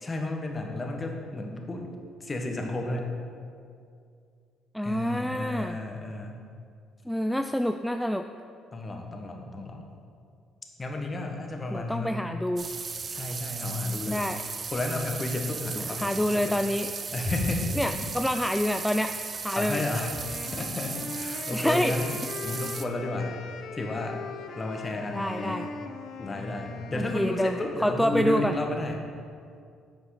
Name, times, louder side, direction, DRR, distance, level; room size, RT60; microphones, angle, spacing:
voice 1, 0.0-1.9 2.2-3.0 4.8-6.4 8.7-9.9 10.8-12.3 13.1-14.3 14.7-16.8 17.1-18.1 19.5-22.1 22.4-23.4 23.7-24.2 24.5-25.6 26.2-29.1, left 2 dB, 30° left, 2 dB, 1.5 m, -32 dB
voice 2, 4.7-5.8 7.1-8.2 11.7-12.7 14.1-14.4 16.0-16.9 17.8-19.1 19.4-19.8 21.5-21.9 25.1-25.7 26.9-28.5, equal, 5° left, 7 dB, 0.4 m, -27 dB
sound 1, 12.6-22.8, right 5 dB, 40° right, 0.6 m, -36 dB
Wind instrument woodwind instrument, 20.0-27.9, left 5 dB, 65° left, 0.6 m, -41 dB
9.8 x 6.2 x 5.0 m, 2.3 s
hypercardioid pair, 60°, 0 cm